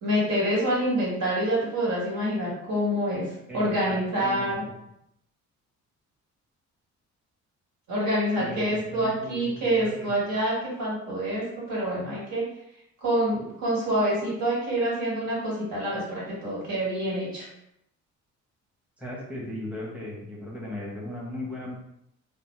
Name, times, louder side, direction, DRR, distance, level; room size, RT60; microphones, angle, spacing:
voice 1, 0.0-3.3 3.5-4.6 7.9-11.4 11.7-12.4 13.0-17.5, right 1 dB, 70° right, -5 dB, 1.5 m, -26 dB
voice 2, 3.5-4.5 8.4-10.1 19.0-21.7, left 1 dB, 5° right, -5 dB, 0.9 m, -37 dB
2.7 x 2.0 x 3.1 m, 0.79 s
cardioid pair, 90°, 30 cm